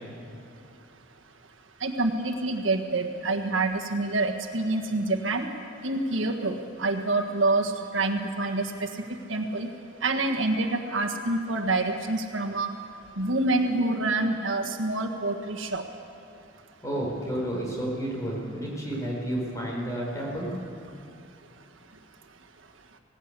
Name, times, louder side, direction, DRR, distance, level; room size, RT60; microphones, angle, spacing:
voice 1, 1.8-5.5 5.8-8.9 9.3-9.7 10.0-12.7 13.2-15.8, right 2 dB, 80° right, 3 dB, 1.6 m, -27 dB
voice 2, 16.8-20.5, right 1 dB, 15° left, -3 dB, 5.0 m, -31 dB
19.0 x 17.0 x 8.3 m, 2.7 s
head